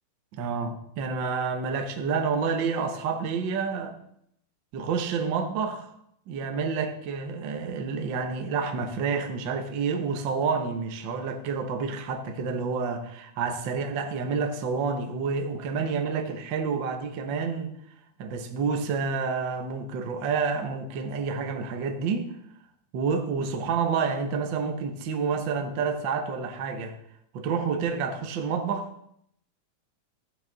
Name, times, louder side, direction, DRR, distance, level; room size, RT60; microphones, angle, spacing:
voice 1, 0.3-4.0 4.7-5.9 6.3-17.7 18.2-22.3 22.9-27.0 27.3-28.9, right 5 dB, 60° right, 5 dB, 1.2 m, -29 dB
13.5 x 9.2 x 4.0 m, 0.72 s
omnidirectional pair, 3.6 m